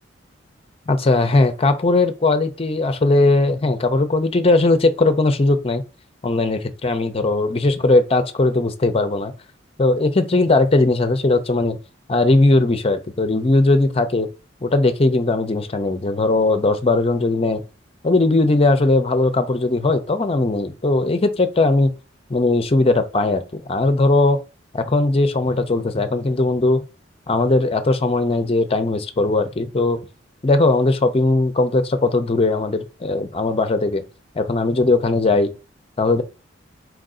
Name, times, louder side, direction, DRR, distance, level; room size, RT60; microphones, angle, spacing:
voice 1, 0.9-5.8 6.2-9.3 9.8-11.8 12.1-14.3 14.6-17.6 18.0-21.9 22.3-24.4 24.7-26.8 27.3-30.0 30.4-34.0 34.4-35.5 36.0-36.2, left 2 dB, 30° left, 0.6 m, -18 dB
4.7 x 2.6 x 3.7 m
head